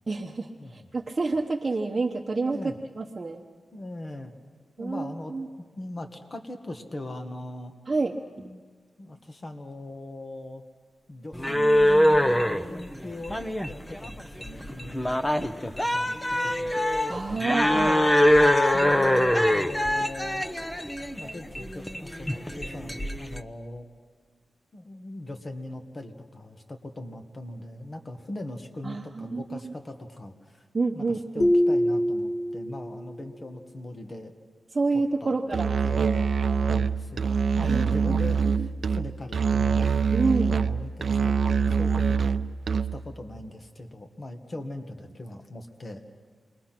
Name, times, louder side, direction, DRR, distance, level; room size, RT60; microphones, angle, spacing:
voice 1, 0.1-2.6 3.0-3.4 4.8-5.5 7.9-8.2 17.1-18.0 28.8-29.7 30.7-31.5 34.7-35.7 37.6-38.2 38.6-38.7 40.1-40.6, right 3 dB, 35° right, 0 dB, 1.0 m, -28 dB
voice 2, 3.7-4.3 4.8-5.3 5.8-7.7 8.4-8.6 9.0-10.6 11.1-16.8 17.6-18.1 18.4-20.5 21.2-23.9 24.7-30.7 31.0-34.3 35.2-39.9 40.5-42.4 42.9-46.0, left 1 dB, 35° left, 5 dB, 1.8 m, -40 dB
sound 1, 11.3-23.4, left 1 dB, 10° left, 0.9 m, -24 dB
sound 2, 31.4-33.1, equal, 80° left, 1.3 m, -24 dB
Musical instrument, 35.5-43.1, right 6 dB, 70° right, 0.6 m, -24 dB
28.5 x 21.5 x 6.0 m, 1.5 s
wide cardioid pair, 90°, 0 cm